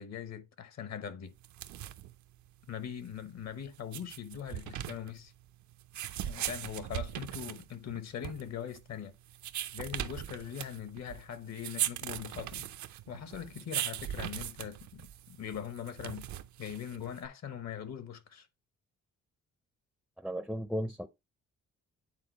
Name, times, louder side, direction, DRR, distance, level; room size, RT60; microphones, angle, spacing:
voice 1, 0.0-1.3 2.7-5.3 6.2-9.1 9.7-12.7 13.1-16.2 16.6-18.5, left 8 dB, 60° left, 1.1 m, -41 dB
sound 1, 1.4-17.3, right 12 dB, 70° right, 0.6 m, -40 dB
voice 2, 20.2-21.1, equal, ahead, 0.5 m, -35 dB
8.9 x 4.0 x 3.0 m
cardioid pair, 90°, 30 cm